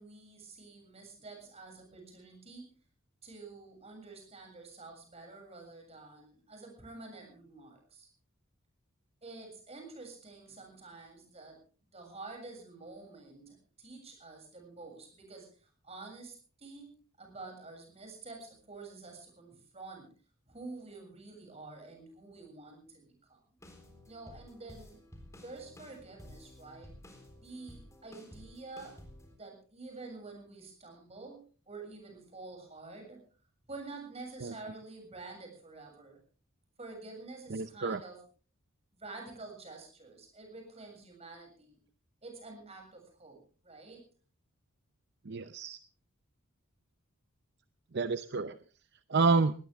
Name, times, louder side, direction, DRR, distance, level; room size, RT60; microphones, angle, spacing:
voice 1, 0.0-2.8 3.2-8.1 9.2-11.6 11.8-20.1 20.5-23.4 24.1-25.0 25.4-27.0 27.4-29.0 29.3-33.2 33.7-36.2 36.8-38.2 38.9-41.8 42.2-44.0, right 3 dB, 30° right, 3 dB, 7.2 m, -48 dB
sound 1, 23.6-29.3, left 1 dB, 15° left, 3.8 m, -53 dB
voice 2, 37.5-38.0 45.3-45.8 47.9-48.6 49.1-49.5, right 4 dB, 50° right, 12 dB, 0.7 m, -29 dB
19.5 x 18.5 x 3.5 m, 0.38 s
head